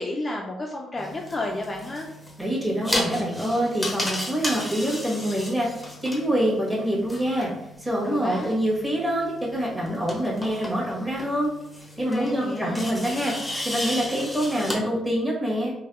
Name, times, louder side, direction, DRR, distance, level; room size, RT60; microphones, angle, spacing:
voice 1, 0.0-2.1 8.0-8.5 12.1-12.9, left 2 dB, 30° left, 0 dB, 0.4 m, -31 dB
sound 1, 1.0-14.7, left 1 dB, 5° left, 0.8 m, -35 dB
voice 2, 2.4-7.5 7.8-11.5 12.0-13.3 13.6-15.7, equal, 15° right, -5 dB, 1.3 m, -25 dB
3.4 x 2.6 x 2.4 m, 0.86 s
cardioid pair, 90°, 0 cm